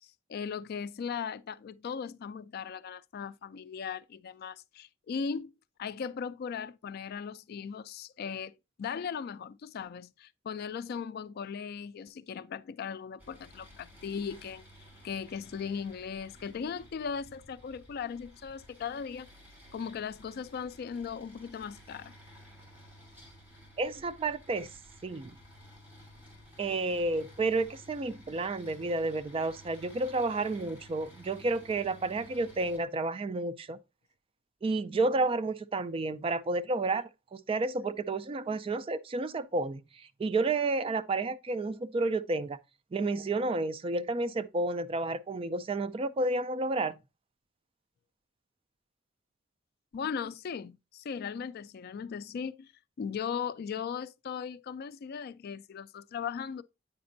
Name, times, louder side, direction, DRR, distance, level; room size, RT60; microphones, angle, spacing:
voice 1, 0.3-5.5 5.8-14.7 15.0-19.3 19.7-22.1 49.9-52.7 53.0-56.6, left 6 dB, 50° left, 0.3 m, -38 dB
sound 1, 13.2-32.8, equal, 10° right, 3.0 m, -54 dB
voice 2, 23.8-24.7 25.0-25.3 26.6-33.8 34.6-42.6 42.9-47.0, right 2 dB, 30° right, 0.3 m, -31 dB
8.6 x 5.1 x 2.6 m
head